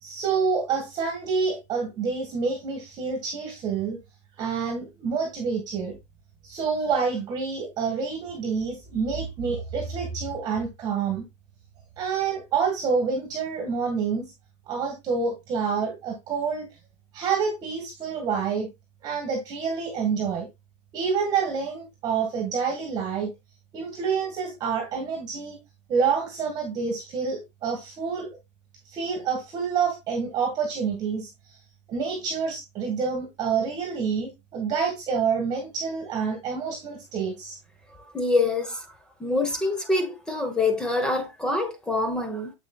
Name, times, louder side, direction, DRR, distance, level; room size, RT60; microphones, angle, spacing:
voice 1, 0.0-4.0 4.4-6.0 6.4-11.2 12.0-14.3 14.7-16.7 17.1-18.7 19.0-20.5 20.9-23.3 23.7-25.6 25.9-28.3 28.8-31.3 31.9-37.6, right 5 dB, 25° right, 1.6 m, -27 dB
voice 2, 38.1-38.8 39.2-42.5, left 2 dB, 5° left, 0.9 m, -25 dB
7.3 x 6.5 x 2.3 m
supercardioid pair, 170°, 16 cm